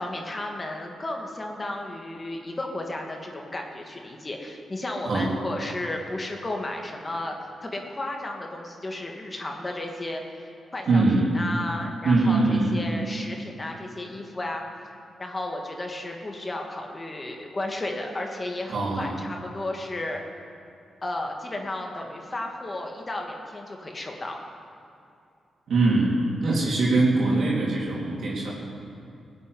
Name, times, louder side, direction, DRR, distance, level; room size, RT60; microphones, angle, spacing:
voice 1, 0.0-7.4 7.6-11.0 11.3-14.6 15.2-20.2 21.0-24.4, left 1 dB, 30° left, 1 dB, 2.4 m, -33 dB
voice 2, 10.9-11.3 12.0-12.7 18.7-19.1 25.7-26.1 26.4-28.5, right 3 dB, 70° right, -5 dB, 3.7 m, -22 dB
17.5 x 8.5 x 9.8 m, 2.5 s
supercardioid pair, 55°, 0 cm